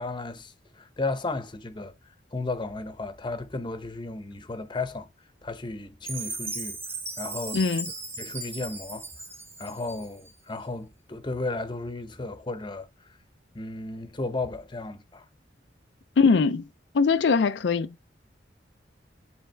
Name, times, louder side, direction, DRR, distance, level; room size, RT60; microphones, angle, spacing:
voice 1, 0.0-1.9 2.3-5.1 5.4-6.8 7.2-7.6 8.2-9.1 9.6-13.1 13.5-15.2, left 3 dB, 25° left, 0.8 m, -34 dB
Chime, 6.1-10.3, right 2 dB, 15° right, 1.2 m, -37 dB
voice 2, 7.5-7.9 16.2-16.6 16.9-17.9, left 5 dB, 85° left, 0.5 m, -21 dB
10.5 x 3.5 x 3.4 m
head